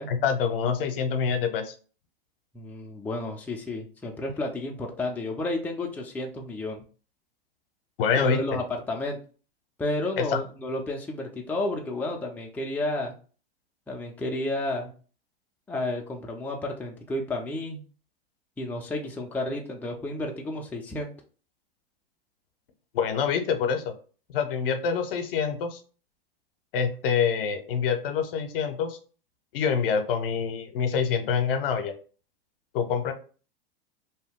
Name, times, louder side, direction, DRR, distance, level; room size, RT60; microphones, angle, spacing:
voice 1, 0.1-1.7 8.0-8.4 10.2-10.4 22.9-23.9 24.3-25.8 26.7-29.0 29.5-31.9 32.7-33.1, left 6 dB, 65° left, 7 dB, 0.7 m, -26 dB
voice 2, 2.5-6.8 8.2-9.2 9.8-13.1 13.9-14.9 15.7-17.8 18.6-21.1, left 2 dB, 5° left, 1 dB, 0.4 m, -31 dB
2.7 x 2.2 x 3.5 m, 0.38 s
hypercardioid pair, 105°, 29 cm